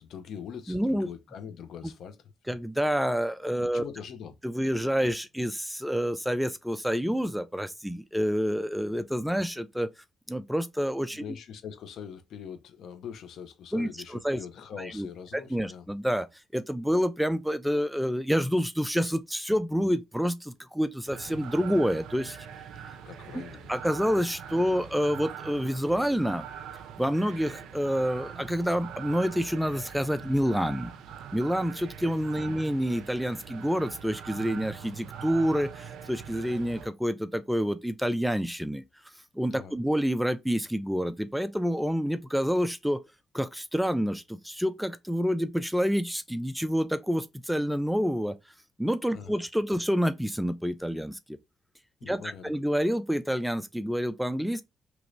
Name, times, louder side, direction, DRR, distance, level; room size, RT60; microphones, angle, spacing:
voice 1, 0.0-2.3 3.6-4.3 11.2-15.9 23.1-23.7 32.4-32.6 39.5-39.7 49.1-49.5 52.0-52.5, left 7 dB, 70° left, 0.6 m, -43 dB
voice 2, 0.7-1.1 1.8-1.9 2.5-3.8 4.4-9.9 10.3-11.2 13.7-13.9 14.2-14.4 14.9-15.1 15.5-16.3 16.5-22.4 23.7-26.5 27.0-30.9 31.3-38.8 39.4-43.0 43.3-48.4 48.8-51.4 52.0-54.6, equal, ahead, 0.3 m, -28 dB
sound 1, 21.1-36.9, right 8 dB, 80° right, 0.4 m, -43 dB
2.9 x 2.6 x 3.1 m
cardioid pair, 90°, 0 cm